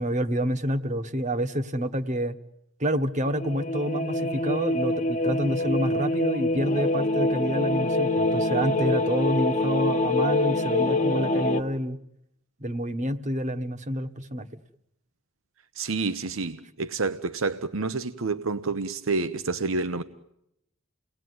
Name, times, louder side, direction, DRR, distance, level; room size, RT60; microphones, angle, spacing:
voice 1, 0.0-2.4 2.8-12.0 12.6-14.5, equal, 35° right, 1.2 m, -28 dB
sound 1, 3.2-11.6, left 2 dB, 35° left, 1.1 m, -25 dB
voice 2, 15.8-20.0, right 3 dB, 85° right, 1.0 m, -28 dB
30.0 x 19.0 x 9.6 m
head